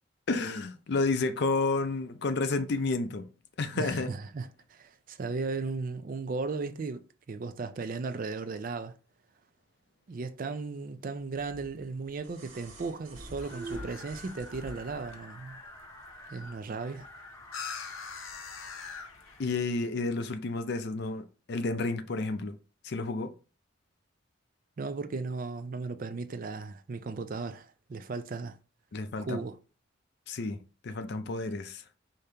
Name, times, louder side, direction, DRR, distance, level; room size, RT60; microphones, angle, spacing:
voice 1, 0.3-3.3 3.6-4.1 19.4-22.6 22.8-23.3 28.9-29.4 30.3-31.8, left 3 dB, 55° left, 0.5 m, -31 dB
voice 2, 3.7-7.0 7.3-8.9 10.1-15.6 16.3-17.1 24.8-28.6 29.2-29.6, right 4 dB, 45° right, 0.4 m, -36 dB
sound 1, 11.4-15.1 16.4-16.5, right 1 dB, 80° right, 1.6 m, -45 dB
sound 2, 13.0-19.4, left 6 dB, 85° left, 0.7 m, -45 dB
sound 3, 13.5-19.7, left 1 dB, 15° left, 0.7 m, -50 dB
5.1 x 2.8 x 3.3 m
head